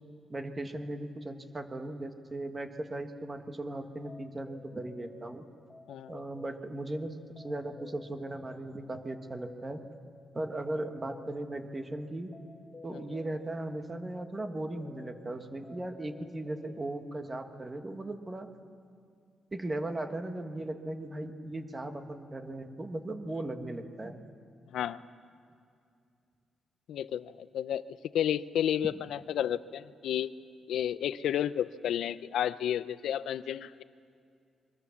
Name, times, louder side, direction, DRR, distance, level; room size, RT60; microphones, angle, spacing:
voice 1, 0.3-5.4 6.1-9.8 10.3-12.3 12.8-18.5 19.5-24.2, right 1 dB, 15° right, 6 dB, 1.5 m, -37 dB
sound 1, 3.6-16.9, left 3 dB, 25° left, 1.0 m, -54 dB
voice 2, 26.9-30.3 30.7-33.8, left 10 dB, 80° left, 15 dB, 0.6 m, -31 dB
26.0 x 23.5 x 7.2 m, 2.4 s
wide cardioid pair, 165°, 0 cm